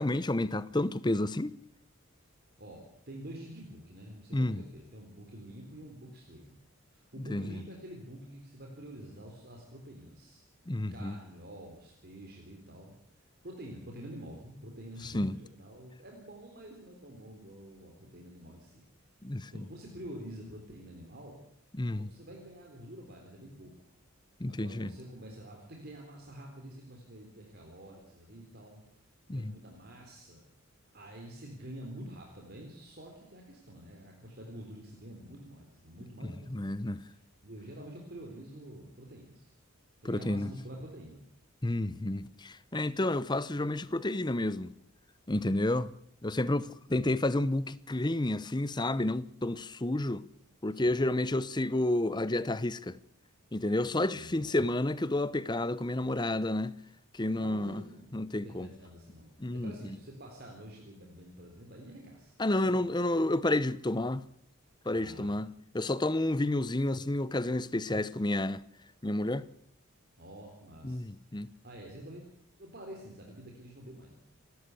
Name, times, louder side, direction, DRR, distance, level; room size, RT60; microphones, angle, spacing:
voice 1, 0.0-1.5 4.3-4.6 7.3-7.4 10.7-11.1 15.0-15.3 19.2-19.5 21.8-22.1 24.4-24.9 29.3-29.5 36.5-37.0 40.0-40.5 41.6-44.7 45.3-45.9 46.2-50.2 50.6-53.0 53.5-56.7 57.1-57.8 58.1-58.7 59.4-59.7 62.4-64.3 64.9-65.5 65.7-68.6 69.0-69.5 70.8-71.5, left 1 dB, 20° left, 0.7 m, -30 dB
voice 2, 2.4-6.6 6.9-10.4 10.9-12.9 13.4-18.9 19.2-19.3 19.5-21.4 22.0-24.0 24.5-30.5 30.9-39.5 40.0-41.2 46.9-47.2 50.7-51.1 53.8-54.7 57.4-62.3 62.6-62.7 63.0-63.2 64.9-65.4 70.2-71.1 71.4-72.3 72.6-74.2, right 1 dB, 45° right, 3.9 m, -48 dB
28.0 x 13.0 x 8.3 m
head